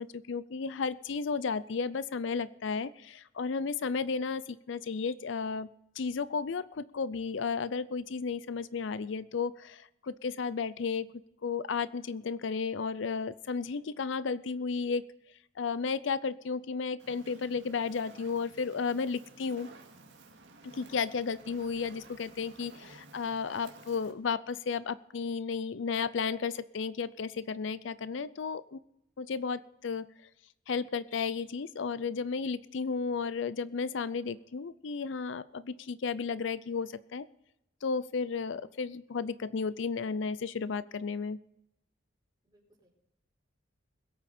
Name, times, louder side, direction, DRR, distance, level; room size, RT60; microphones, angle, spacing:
voice 1, 0.0-11.1 11.4-15.1 15.6-19.7 20.6-28.8 29.2-30.1 30.7-37.3 37.8-41.4, left 5 dB, 70° left, 16 dB, 0.5 m, -33 dB
Fire, 17.0-24.1, right 3 dB, 65° right, 2.2 m, -54 dB
voice 2, 42.4-42.9, right 1 dB, 20° right, -2 dB, 5.0 m, -67 dB
21.5 x 8.7 x 4.3 m, 0.82 s
head